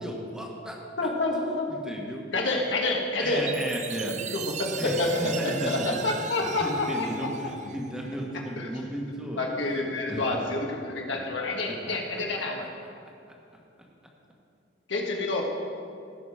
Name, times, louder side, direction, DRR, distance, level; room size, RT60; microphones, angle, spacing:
voice 1, 0.0-1.1 1.7-2.2 3.2-4.1 4.8-6.0 6.4-9.4 10.1-10.2 11.1-11.2 11.9-12.2, equal, 5° right, -2 dB, 1.3 m, -34 dB
voice 2, 1.0-1.7 2.3-3.5 4.1-7.1 8.5-8.7 9.4-12.7 14.9-15.4, left 2 dB, 80° left, 0 dB, 1.5 m, -28 dB
Chime, 3.5-8.2, right 9 dB, 40° right, 0.4 m, -38 dB
16.5 x 5.9 x 4.9 m, 2.4 s
head